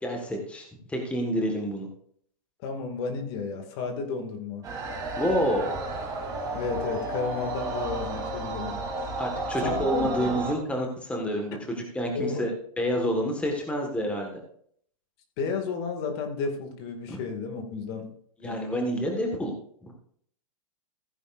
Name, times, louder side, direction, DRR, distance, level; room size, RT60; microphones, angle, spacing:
voice 1, 0.0-1.9 5.2-5.8 9.2-14.3 17.1-17.2 18.4-19.5 19.8-19.9, equal, 5° left, 2 dB, 1.6 m, -28 dB
voice 2, 2.6-4.6 6.5-8.8 9.6-10.4 11.5-11.6 12.1-12.5 15.4-18.1 18.4-18.6, left 4 dB, 45° left, 5 dB, 2.2 m, -32 dB
sound 1, 4.6-10.6, right 2 dB, 20° right, 3.2 m, -32 dB
15.0 x 9.6 x 2.6 m, 0.62 s
hypercardioid pair, 140°, 18 cm